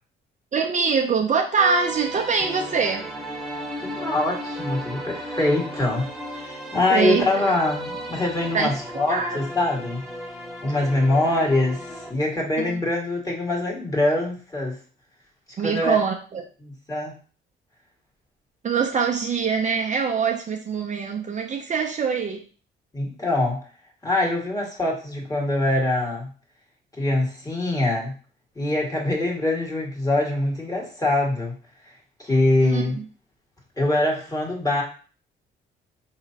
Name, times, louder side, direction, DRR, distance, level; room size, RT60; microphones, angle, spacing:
voice 1, 0.5-3.1 6.9-7.3 8.5-8.7 9.1-9.4 12.6-12.7 15.6-16.4 18.6-22.4 32.6-32.8, right 5 dB, 40° right, 3 dB, 0.5 m, -23 dB
sound 1, 1.6-12.1, equal, ahead, 1.1 m, -35 dB
voice 2, 3.8-10.0 10.6-14.8 15.6-16.0 16.6-17.1 22.9-23.6 24.0-26.3 27.0-28.1 28.5-31.5 32.2-33.0 33.8-34.8, left 2 dB, 15° left, -2 dB, 1.7 m, -24 dB
4.7 x 3.0 x 2.7 m, 0.38 s
cardioid pair, 90°, 20 cm